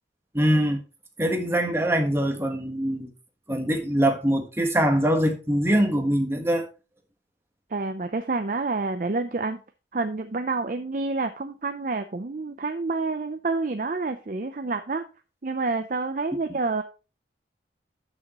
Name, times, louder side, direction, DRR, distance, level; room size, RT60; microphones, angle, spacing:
voice 1, 0.3-0.8 1.2-3.1 3.5-6.7, right 1 dB, 15° right, 1.3 m, -23 dB
voice 2, 7.7-9.6 9.9-15.0 15.4-16.8, right 3 dB, 45° right, 0.5 m, -28 dB
11.5 x 6.4 x 3.0 m
head